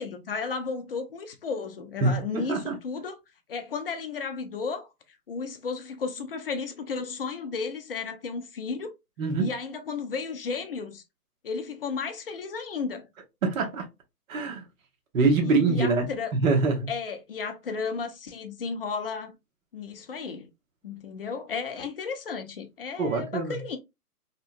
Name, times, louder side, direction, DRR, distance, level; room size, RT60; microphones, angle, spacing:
voice 1, 0.0-3.2 3.5-4.9 5.3-8.9 9.4-11.0 11.4-13.1 15.4-16.3 16.9-19.3 19.7-20.5 20.8-23.8, left 5 dB, 40° left, 0.4 m, -33 dB
voice 2, 2.0-2.8 9.2-9.5 13.4-13.9 14.3-14.6 15.1-16.9 23.0-23.6, right 3 dB, 60° right, 0.9 m, -25 dB
2.8 x 2.2 x 2.5 m
hypercardioid pair, 135°, 47 cm